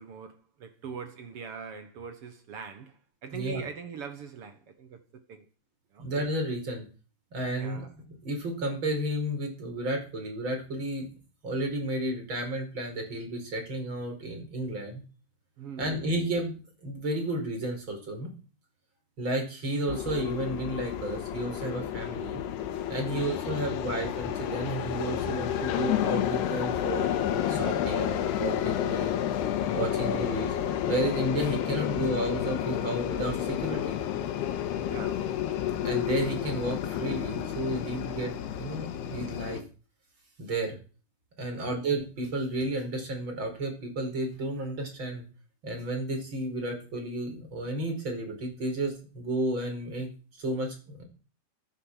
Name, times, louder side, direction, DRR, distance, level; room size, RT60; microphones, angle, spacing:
voice 1, 0.0-5.5 5.9-6.0 7.6-7.9 15.6-16.1 23.0-23.3 30.0-30.2 34.9-35.3 41.6-41.8, right 6 dB, 65° right, 1.4 m, -42 dB
voice 2, 6.0-6.9 7.3-11.1 11.4-15.0 15.8-18.3 19.2-22.4 22.9-27.1 27.5-29.1 29.7-30.5 30.9-34.0 35.8-39.6 40.4-40.8 41.4-45.3 45.6-51.0, right 1 dB, 30° right, 5.5 m, -32 dB
sound 1, 19.9-39.6, left 10 dB, 90° left, 3.4 m, -30 dB
13.5 x 10.0 x 7.5 m
omnidirectional pair, 4.6 m